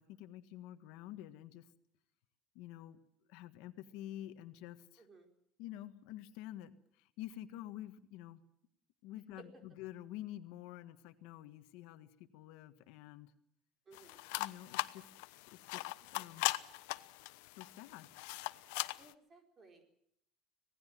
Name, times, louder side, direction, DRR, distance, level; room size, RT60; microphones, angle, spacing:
voice 1, 0.0-1.7 2.5-3.0 3.3-5.0 5.6-8.4 9.0-13.3 14.4-15.1 15.5-16.5 17.5-18.1, left 13 dB, 70° left, 9 dB, 1.6 m, -49 dB
voice 2, 5.0-5.3 9.4-9.5 13.9-14.2 19.0-19.8, right 3 dB, 25° right, 4 dB, 4.6 m, -59 dB
sound 1, 13.9-19.1, left 20 dB, 90° left, 1.0 m, -40 dB
26.0 x 18.5 x 7.6 m, 0.71 s
cardioid pair, 165°, 0 cm